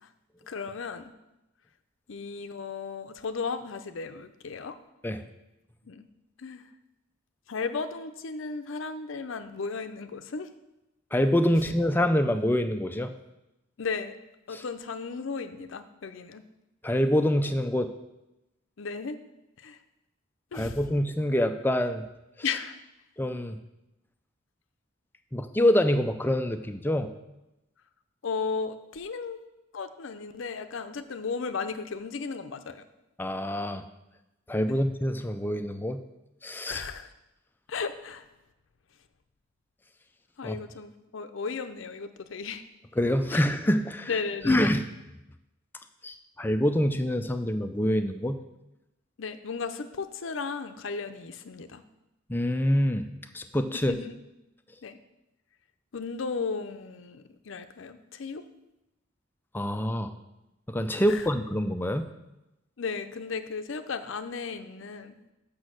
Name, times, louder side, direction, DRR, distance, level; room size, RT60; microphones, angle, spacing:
voice 1, 0.5-1.1 2.1-4.8 5.9-6.1 6.4-6.7 7.5-10.5 13.8-14.1 14.5-16.4 18.8-19.2 19.6-19.8 20.5-20.8 22.4-22.8 28.2-29.4 29.7-32.9 34.7-34.8 36.7-37.1 37.7-38.2 40.4-42.7 43.3-43.4 44.1-44.7 49.2-51.8 53.9-54.2 54.8-55.0 55.9-58.4 61.1-61.2 62.8-65.2, left 5 dB, 65° left, 9 dB, 0.5 m, -35 dB
voice 2, 11.1-13.1 14.5-14.6 16.8-17.9 20.5-22.0 23.2-23.6 25.3-27.1 33.2-33.8 34.5-36.0 36.4-36.8 40.4-40.6 43.0-44.1 44.4-44.8 46.0-48.4 52.3-53.1 53.3-53.9 59.5-60.1 60.7-62.1, left 1 dB, 10° left, 8 dB, 0.4 m, -26 dB
6.3 x 6.1 x 6.3 m, 0.94 s
head